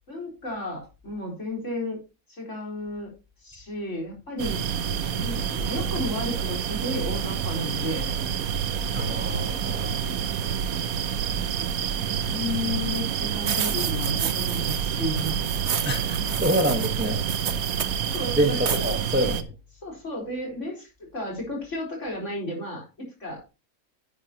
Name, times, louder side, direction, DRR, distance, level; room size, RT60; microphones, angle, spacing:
voice 1, 0.1-2.0 2.3-3.1 3.4-4.6 5.1-8.1 11.3-11.7 12.3-15.4 18.1-19.1 19.8-23.5, left 1 dB, 55° left, 4.6 m, -33 dB
sound 1, 4.4-19.4, right 8 dB, 85° right, 1.3 m, -28 dB
voice 2, 8.9-10.1 15.8-17.2 18.4-19.5, right 1 dB, 10° right, 1.1 m, -26 dB
sound 2, 12.9-13.0 13.5-14.9 15.2-18.2 18.7-19.0, right 7 dB, 55° right, 1.1 m, -32 dB
10.5 x 9.6 x 2.9 m
omnidirectional pair, 1.5 m